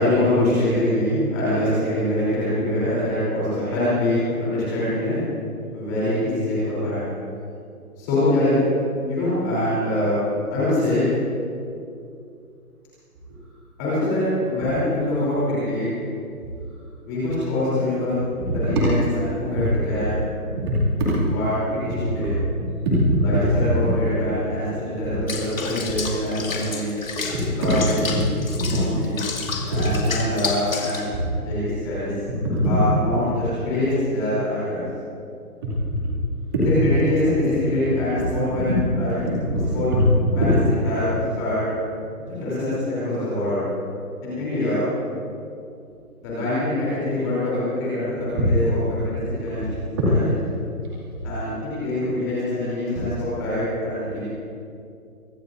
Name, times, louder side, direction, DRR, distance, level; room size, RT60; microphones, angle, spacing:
voice 1, 0.0-5.2 5.7-7.0 8.0-8.6 9.1-10.2 10.5-11.0 13.8-15.8 17.0-18.2 18.5-20.2 21.2-22.3 23.2-26.9 27.5-28.2 28.7-29.1 29.7-31.1 31.4-32.1 32.6-34.8 36.6-39.3 39.7-39.9 40.3-40.5 40.8-41.7 42.3-43.6 44.2-44.9 46.2-48.8 49.0-49.7 51.2-54.2, left 1 dB, 10° left, -11 dB, 3.4 m, -24 dB
voice 2, 20.5-21.2 21.9-22.3 22.9-23.2 23.8-23.9 25.0-25.2 27.3-27.4 28.6-28.8 29.5-29.6 31.1-31.2 32.4-32.7 36.5-36.7 38.7-38.8 39.3-40.0 40.3-40.6 48.3-48.4 50.0-50.2, equal, 15° right, -9 dB, 2.4 m, -22 dB
Water / Bathtub (filling or washing), 25.3-31.1, left 4 dB, 60° left, 2.6 m, -31 dB
24.0 x 20.5 x 2.6 m, 2.5 s
hypercardioid pair, 175°, 45 cm